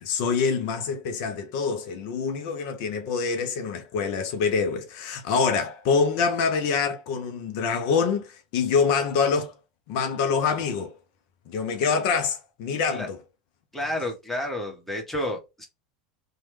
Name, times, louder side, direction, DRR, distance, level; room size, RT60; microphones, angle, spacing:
voice 1, 0.0-9.5 9.9-10.9 11.5-13.2, left 5 dB, 60° left, 0.5 m, -25 dB
voice 2, 13.7-15.7, left 1 dB, 5° left, 1.1 m, -30 dB
3.0 x 2.2 x 3.0 m
hypercardioid pair, 85°, 4 cm